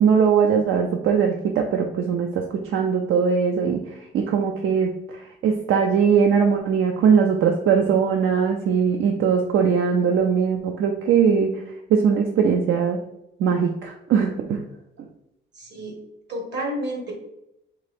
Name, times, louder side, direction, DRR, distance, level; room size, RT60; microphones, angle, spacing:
voice 1, 0.0-11.6 11.9-13.0 13.4-14.6, right 6 dB, 85° right, 3 dB, 0.4 m, -20 dB
voice 2, 15.5-16.0 16.3-17.1, right 1 dB, 60° right, 1 dB, 1.4 m, -30 dB
3.6 x 3.3 x 3.4 m, 0.82 s
cardioid pair, 100°, 20 cm